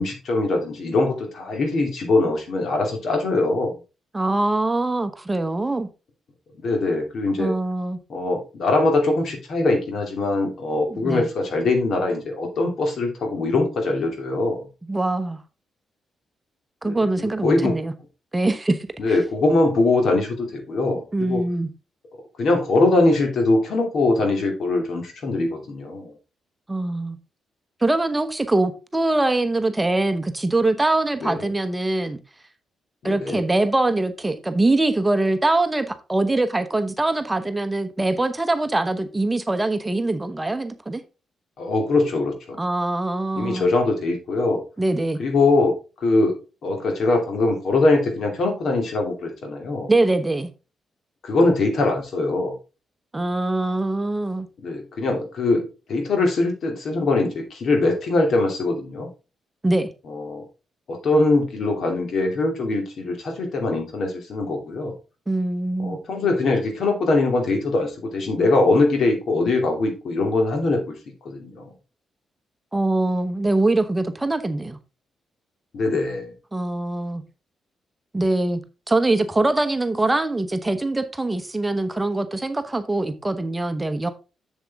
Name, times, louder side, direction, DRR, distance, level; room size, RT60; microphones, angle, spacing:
voice 1, 0.0-3.8 6.6-7.5 8.1-14.7 16.8-17.7 19.0-21.4 22.4-26.1 31.2-31.5 33.0-33.4 41.6-42.6 43.4-44.6 45.2-45.8 46.0-49.9 51.2-52.5 54.6-59.1 60.1-60.4 60.9-64.9 65.8-71.0 71.2-71.7 75.7-76.3, left 2 dB, 65° left, 2.9 m, -22 dB
voice 2, 4.1-5.9 7.4-8.0 10.9-11.3 14.9-15.4 16.8-17.9 18.3-19.1 21.1-21.7 26.7-27.2 27.8-32.2 33.0-41.0 42.6-43.7 44.8-45.2 49.9-50.5 53.1-54.5 59.6-59.9 65.3-66.0 72.7-74.8 76.5-77.2 78.1-78.6 78.9-84.1, right 2 dB, 15° right, 1.0 m, -23 dB
7.3 x 7.3 x 3.6 m
cardioid pair, 75°, 0 cm